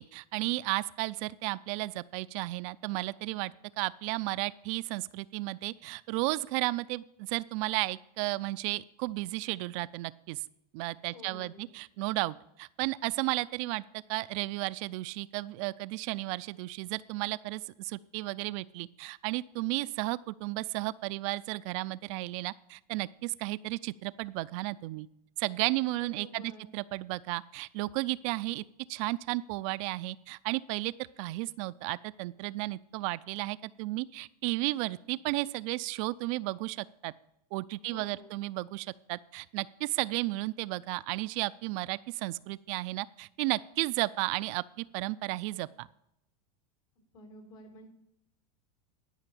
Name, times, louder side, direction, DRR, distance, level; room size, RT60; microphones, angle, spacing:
voice 1, 0.0-10.4 10.7-13.8 14.1-25.1 25.4-28.6 28.9-30.9 31.2-37.1 37.5-45.9, right 20 dB, 55° right, 18 dB, 0.4 m, -33 dB
voice 2, 11.1-11.7 25.9-26.7 37.8-38.3 47.0-47.9, left 1 dB, 70° left, 3 dB, 3.8 m, -50 dB
12.0 x 5.7 x 7.0 m, 0.80 s
supercardioid pair, 125°, 20 cm